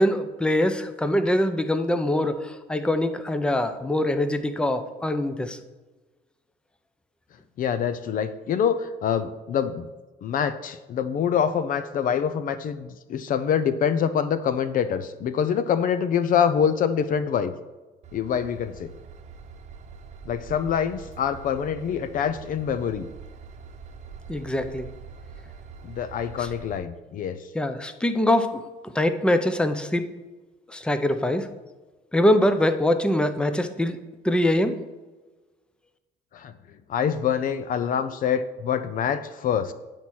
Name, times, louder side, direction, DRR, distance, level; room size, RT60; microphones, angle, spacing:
voice 1, 0.0-5.6 24.3-24.9 26.4-26.5 27.5-30.1 30.7-31.5 32.1-34.0 34.2-34.7, left 1 dB, 5° left, 10 dB, 0.6 m, -23 dB
voice 2, 7.6-9.9 10.2-17.5 18.1-18.9 20.3-23.1 25.8-27.4 36.3-36.5 36.9-39.7, left 8 dB, 55° left, 13 dB, 0.5 m, -25 dB
Train / Engine, 18.0-26.8, right 5 dB, 45° right, 0.9 m, -44 dB
9.9 x 4.3 x 6.2 m, 1.2 s
cardioid pair, 110°, 17 cm